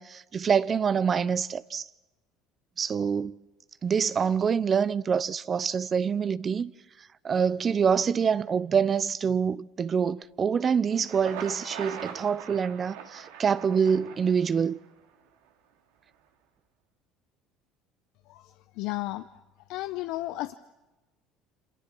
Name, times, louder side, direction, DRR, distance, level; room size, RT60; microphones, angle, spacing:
voice 1, 0.0-1.9 2.8-3.4 3.8-6.7 7.2-14.8, right 6 dB, 40° right, 0.8 m, -26 dB
Thunder, 10.9-14.9, right 8 dB, 80° right, 2.7 m, -41 dB
voice 2, 18.3-19.3 19.7-20.5, left 17 dB, 70° left, 0.8 m, -34 dB
28.0 x 27.5 x 6.2 m
hypercardioid pair, 70°, 0 cm